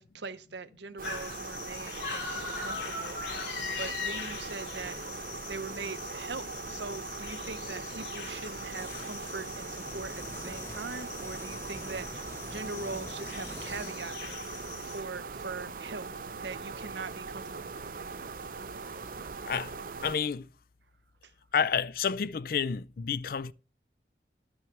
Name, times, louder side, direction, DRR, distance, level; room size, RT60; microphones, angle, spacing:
voice 1, 0.0-3.1 3.8-5.0 5.5-14.2 14.8-16.1 16.4-17.7, right 4 dB, 80° right, 0.8 m, -41 dB
sound 1, 1.0-15.0, left 5 dB, 75° left, 2.7 m, -41 dB
sound 2, 1.0-20.2, right 4 dB, 50° right, 0.6 m, -41 dB
sound 3, 8.7-13.9, left 1 dB, 15° left, 0.7 m, -47 dB
voice 2, 20.0-20.5 21.5-23.5, left 7 dB, 55° left, 0.4 m, -29 dB
12.0 x 6.3 x 4.7 m
head